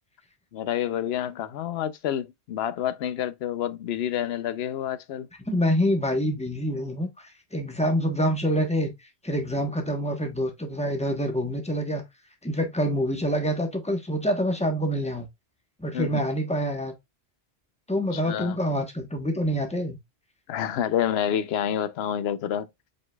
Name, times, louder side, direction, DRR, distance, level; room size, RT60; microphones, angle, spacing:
voice 1, 0.5-5.3 15.9-16.2 18.1-18.6 20.5-22.7, left 10 dB, 70° left, 0.8 m, -28 dB
voice 2, 5.4-7.3 7.5-8.9 9.2-12.0 12.4-15.3 15.8-16.9 17.9-20.0, equal, 5° left, 0.9 m, -26 dB
5.3 x 3.8 x 2.2 m
omnidirectional pair, 1.1 m